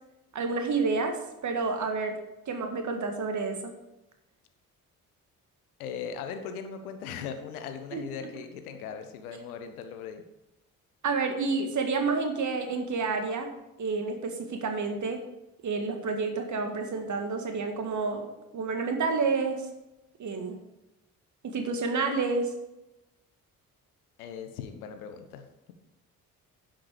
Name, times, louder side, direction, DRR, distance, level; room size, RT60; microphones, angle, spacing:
voice 1, 0.3-2.2 2.5-3.7 7.9-8.0 11.0-13.5 13.8-15.2 15.6-19.7 20.2-20.6 21.4-22.5, right 4 dB, 40° right, 5 dB, 1.8 m, -29 dB
voice 2, 5.8-10.2 24.2-25.7, left 7 dB, 70° left, 7 dB, 1.1 m, -39 dB
10.5 x 7.7 x 5.0 m, 0.93 s
figure-of-eight pair, 45°, 45 cm